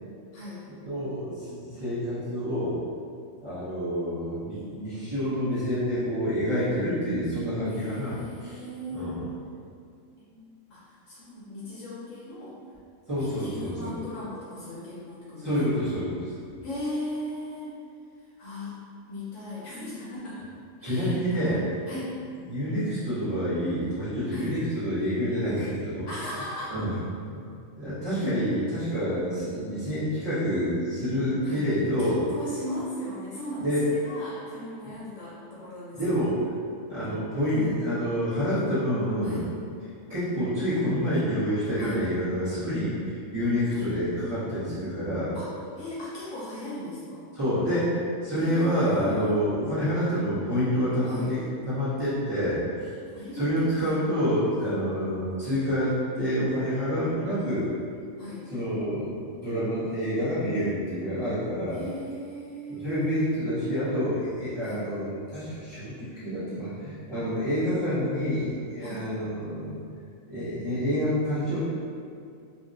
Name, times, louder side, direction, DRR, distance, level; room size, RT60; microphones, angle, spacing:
voice 1, 0.3-0.6 7.7-9.2 10.2-12.6 13.2-15.6 16.6-17.7 18.2-18.8 19.1-20.5 20.8-21.6 21.9-22.2 24.3-24.5 26.1-26.8 31.4-31.6 32.0-36.2 39.2-39.5 41.8-42.0 43.7-43.9 45.3-47.3 48.3-49.4 51.0-51.3 53.0-54.0 58.2-58.5 61.7-63.1 64.6-64.8 68.8-69.1, left 1 dB, 65° left, -8 dB, 0.9 m, -38 dB
voice 2, 0.8-2.8 3.4-8.6 8.9-9.2 13.1-13.9 15.4-16.3 20.8-21.6 22.5-26.1 26.7-26.9 27.2-27.5 27.7-32.2 33.6-33.8 35.9-36.5 36.9-39.5 40.1-45.3 47.3-47.9 48.2-52.9 53.3-57.7 58.5-59.2 59.4-61.8 62.7-69.8 70.3-71.6, equal, 20° right, -15 dB, 1.1 m, -28 dB
2.9 x 2.8 x 2.6 m, 2.3 s
omnidirectional pair, 1.4 m